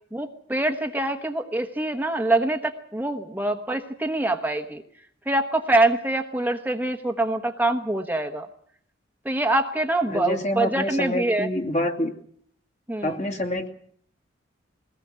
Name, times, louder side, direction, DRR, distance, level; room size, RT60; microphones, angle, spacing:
voice 1, 0.1-4.8 5.3-8.5 9.2-11.5 12.9-13.2, right 2 dB, 10° right, 4 dB, 1.1 m, -25 dB
voice 2, 10.1-12.1 13.0-13.7, left 1 dB, 35° left, 5 dB, 2.4 m, -27 dB
22.0 x 18.5 x 7.5 m, 0.63 s
head